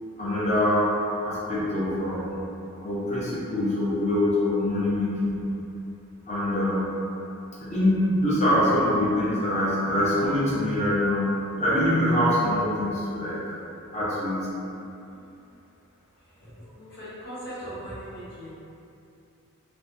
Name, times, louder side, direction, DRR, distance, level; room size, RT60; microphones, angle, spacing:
voice 1, 0.2-0.9 1.2-2.3 2.8-5.4 6.3-6.9 7.6-11.3 11.6-13.5 13.9-14.5, left 1 dB, 30° left, -9 dB, 0.6 m, -24 dB
voice 2, 15.1-15.6 16.4-18.5, equal, 50° left, -14 dB, 0.9 m, -40 dB
2.5 x 2.1 x 2.5 m, 2.8 s
head